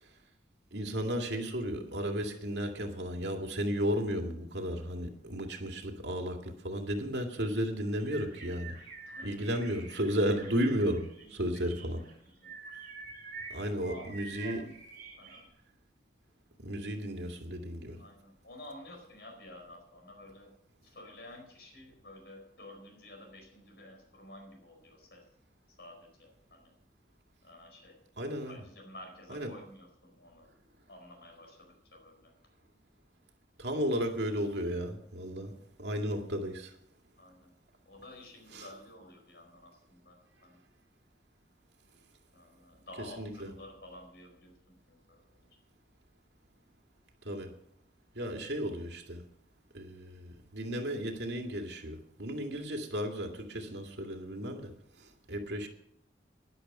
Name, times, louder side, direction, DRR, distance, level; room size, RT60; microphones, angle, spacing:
voice 1, 0.7-8.8 9.2-12.0 13.5-14.6 16.6-18.0 28.2-28.6 29.3-29.5 33.6-36.7 38.5-38.7 43.0-43.5 47.2-47.5 48.1-49.2 49.7-54.7 55.0-55.7, equal, 80° right, 2.2 m, -34 dB
sound 1, 7.8-15.4, right 4 dB, 50° right, 6.2 m, -48 dB
voice 2, 9.0-9.5 11.2-12.6 13.8-14.1 14.4-14.7 15.1-15.5 17.9-20.5 20.8-25.2 25.7-26.7 27.4-28.0 28.4-30.5 30.9-32.3 37.2-37.5 37.8-40.6 42.3-45.5, left 1 dB, 70° left, 4.5 m, -51 dB
13.5 x 11.0 x 5.5 m
head